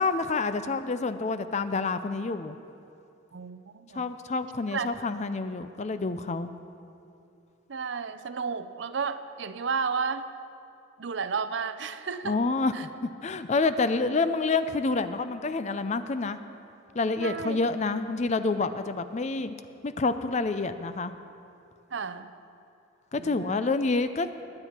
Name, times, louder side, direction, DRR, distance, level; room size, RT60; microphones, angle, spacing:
voice 1, 0.0-2.6 3.9-6.5 12.2-16.4 16.9-19.5 19.8-21.1 23.1-24.3, left 3 dB, 35° left, 11 dB, 0.5 m, -28 dB
voice 2, 3.3-4.1 4.7-4.9 7.7-10.3 11.0-12.4 12.7-12.9 17.2-17.6 21.9-22.3 23.2-23.7, right 5 dB, 65° right, 11 dB, 0.6 m, -32 dB
21.0 x 9.0 x 4.4 m, 2.7 s
head